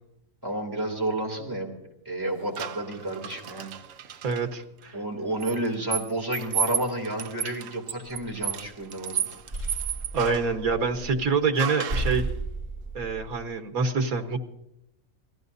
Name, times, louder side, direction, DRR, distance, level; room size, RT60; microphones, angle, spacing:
voice 1, 0.4-1.7 2.0-3.7 4.9-9.3, right 1 dB, 15° right, 1 dB, 3.0 m, -31 dB
sound 1, 2.6-4.4 5.4-10.6 11.6-12.2, right 9 dB, 70° right, 1.1 m, -33 dB
voice 2, 4.2-5.0 10.1-12.3 12.9-14.4, right 4 dB, 85° right, 6 dB, 1.8 m, -26 dB
sound 2, 8.1-8.7 9.2-11.3 11.6-11.7 11.9-13.4, right 2 dB, 40° right, 8.3 m, -33 dB
27.0 x 17.5 x 2.7 m, 0.85 s
omnidirectional pair, 1.4 m